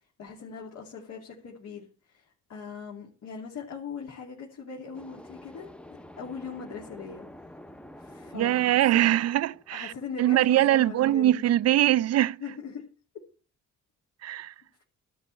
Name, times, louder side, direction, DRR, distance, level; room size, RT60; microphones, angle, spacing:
voice 1, 0.2-5.7 6.2-7.3 8.0-9.0 9.7-11.7 12.4-12.8, left 6 dB, 70° left, 3.1 m, -40 dB
sound 1, 4.9-10.6, left 1 dB, 5° left, 0.6 m, -48 dB
voice 2, 8.3-9.9 10.2-12.4 14.2-14.5, right 13 dB, 55° right, 0.4 m, -22 dB
12.5 x 5.3 x 8.6 m
cardioid pair, 90°, 30 cm